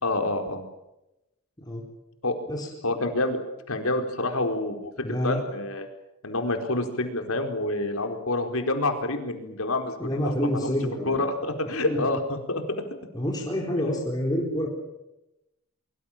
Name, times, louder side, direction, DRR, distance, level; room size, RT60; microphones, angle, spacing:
voice 1, 0.0-0.6 2.2-2.4 2.8-3.4 3.7-5.9 6.2-10.0 10.2-10.7 11.1-12.8, left 2 dB, 85° left, 5 dB, 4.4 m, -27 dB
voice 2, 5.0-5.4 10.0-11.3 11.8-12.0 13.1-14.7, equal, 20° left, -2 dB, 4.4 m, -28 dB
24.0 x 24.0 x 7.5 m, 0.91 s
head